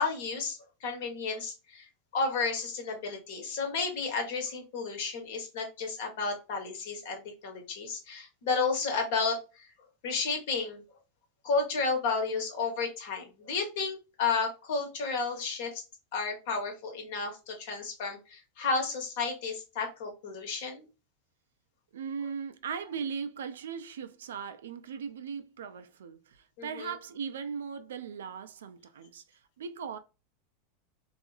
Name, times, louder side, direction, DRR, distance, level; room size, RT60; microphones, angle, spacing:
voice 1, 0.0-1.9 2.1-9.7 10.0-10.8 11.4-15.8 16.1-20.9 26.6-26.9, left 4 dB, 65° left, 1.0 m, -32 dB
voice 2, 21.9-29.2 29.6-30.0, right 6 dB, 80° right, 0.3 m, -38 dB
2.7 x 2.4 x 2.4 m
hypercardioid pair, 105°, 0 cm